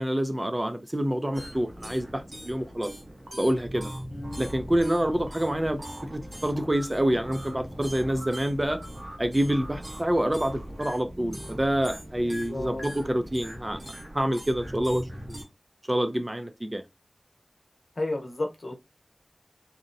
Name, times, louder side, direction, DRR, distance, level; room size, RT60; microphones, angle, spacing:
voice 1, 0.0-2.9 3.4-3.9 4.4-5.8 6.1-8.8 9.2-13.8 14.1-15.4 15.9-16.8, right 1 dB, 25° right, 0.4 m, -27 dB
sound 1, 1.3-15.4, equal, 75° right, 1.0 m, -40 dB
voice 2, 4.1-4.5 12.3-12.8 18.0-18.7, left 2 dB, 80° left, 0.7 m, -33 dB
2.7 x 2.1 x 2.5 m
wide cardioid pair, 60°, 0 cm